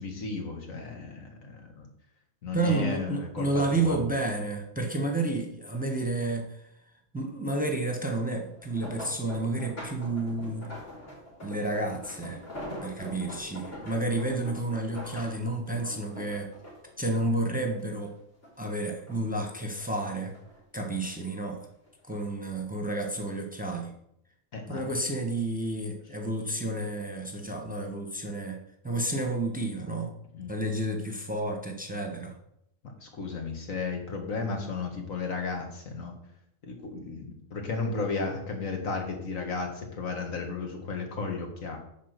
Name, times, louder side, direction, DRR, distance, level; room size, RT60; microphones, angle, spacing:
voice 1, 0.0-1.9 2.4-4.0 24.5-24.8 30.3-30.5 32.8-36.1 36.6-41.8, left 4 dB, 90° left, 2 dB, 2.1 m, -34 dB
voice 2, 2.5-6.7 7.1-10.7 11.4-12.4 12.8-16.5 17.0-18.2 18.6-20.3 20.7-21.7 22.0-23.9 24.7-28.6 28.8-30.1 30.5-32.4, right 2 dB, 5° right, 3 dB, 1.0 m, -30 dB
sound 1, 8.5-18.1 18.4-19.4 19.8-21.1 21.9-22.2 22.6-22.7, left 1 dB, 65° left, 3.4 m, -43 dB
10.0 x 4.3 x 6.6 m, 0.75 s
omnidirectional pair, 1.4 m